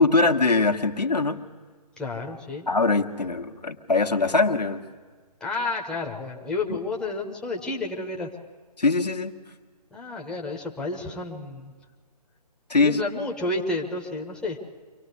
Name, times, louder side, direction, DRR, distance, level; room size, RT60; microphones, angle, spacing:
voice 1, 0.0-1.4 2.7-4.8 6.7-6.8 8.8-9.3 12.7-13.0, left 3 dB, 85° left, 6 dB, 1.4 m, -22 dB
voice 2, 2.0-2.7 5.4-8.3 9.9-11.7 12.8-14.6, left 2 dB, 5° left, -1 dB, 0.8 m, -31 dB
24.5 x 17.5 x 8.2 m, 1.5 s
figure-of-eight pair, 145°, 21 cm